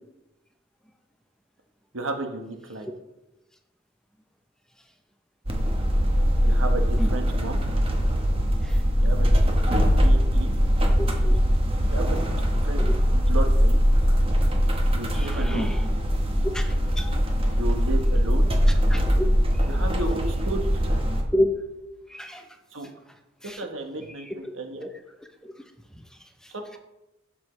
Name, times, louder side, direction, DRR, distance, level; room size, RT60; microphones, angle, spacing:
voice 1, 1.9-2.9 6.4-7.6 9.0-9.3 9.7-10.5 11.9-12.2 12.6-13.8 14.9-15.7 17.5-18.5 19.7-21.0 22.7-22.9 23.4-24.9 26.5-26.8, right 2 dB, 85° right, 4 dB, 1.2 m, -33 dB
sound 1, 5.5-21.2, equal, 30° right, 1.2 m, -21 dB
voice 2, 11.0-11.4 12.8-12.9 15.1-15.9 16.5-17.2 18.9-19.3 19.5-19.7 21.3-21.5 22.1-22.5 23.4-23.6 24.2-24.3 24.8-24.9 25.4-25.5 25.9-26.0 26.4-26.5, left 1 dB, 5° left, 5 dB, 0.7 m, -30 dB
12.0 x 6.1 x 3.2 m, 0.98 s
head